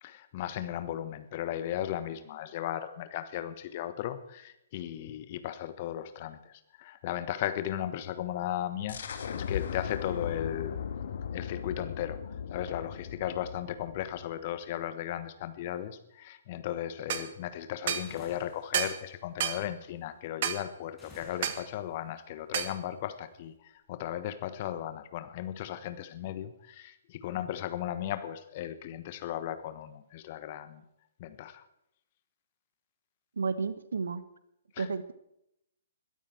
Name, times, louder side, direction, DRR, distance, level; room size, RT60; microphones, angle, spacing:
voice 1, 0.0-10.8 11.3-30.8 31.2-31.6 34.7-34.9, left 11 dB, 35° left, 11 dB, 1.3 m, -36 dB
sound 1, 8.9-14.4, left 7 dB, 50° left, 1.8 m, -37 dB
sound 2, 17.1-17.3 17.9-18.1 18.7-19.0 19.4-19.6 20.4-20.6 21.4-21.6 22.5-22.8, right 9 dB, 40° right, 1.3 m, -30 dB
sound 3, 18.0-18.7 21.0-21.9, left 1 dB, 5° left, 6.9 m, -52 dB
voice 2, 33.4-34.2 34.8-35.1, right 4 dB, 60° right, 15 dB, 1.2 m, -32 dB
22.0 x 12.5 x 4.5 m, 0.80 s
figure-of-eight pair, 125°, 0 cm